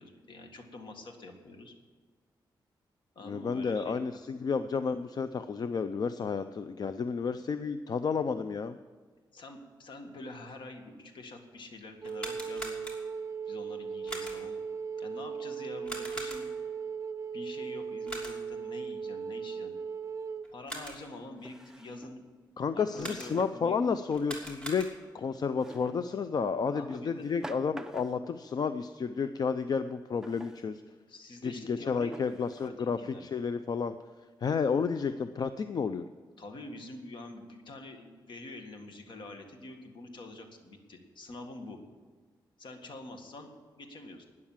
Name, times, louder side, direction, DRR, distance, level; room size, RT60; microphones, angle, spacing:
voice 1, 0.0-1.7 3.2-4.0 4.3-4.4 9.3-12.8 13.5-14.6 15.0-16.5 17.3-19.8 20.5-22.3 22.7-23.9 26.7-27.3 31.1-33.3 36.4-41.8 42.6-43.5 43.8-44.3, left 2 dB, 70° left, 5 dB, 1.9 m, -46 dB
voice 2, 3.2-8.8 22.6-24.9 25.1-30.8 31.4-34.0 34.4-36.0, left 5 dB, 50° left, 11 dB, 0.5 m, -31 dB
sound 1, 12.0-13.3 14.1-14.6 15.8-16.7 18.1-18.6 20.4-21.2 23.0-23.6 24.1-25.2, right 1 dB, 10° left, 2.9 m, -43 dB
Wind instrument woodwind instrument, 12.0-20.5, right 6 dB, 40° right, 0.4 m, -38 dB
Drawer open or close, 20.0-20.1 21.4-22.2 22.9-23.7 25.6-26.1 26.9-28.4 30.2-30.7 31.4-31.5 32.1-32.7, right 1 dB, 5° right, 0.7 m, -48 dB
12.5 x 9.6 x 7.3 m, 1.5 s
wide cardioid pair, 110°, 8 cm